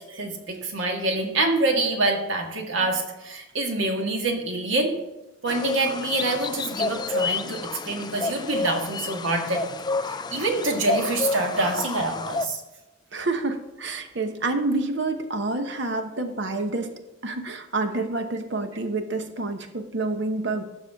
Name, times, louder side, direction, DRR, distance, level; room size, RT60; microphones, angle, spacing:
voice 1, 0.1-4.9 5.4-9.6 10.0-12.6, right 2 dB, 80° right, 2 dB, 1.7 m, -26 dB
sound 1, 5.5-12.4, left 3 dB, 20° left, 0.4 m, -30 dB
voice 2, 13.1-16.9 17.2-20.6, right 2 dB, 65° right, 7 dB, 1.0 m, -28 dB
15.5 x 6.2 x 3.6 m, 1.0 s
head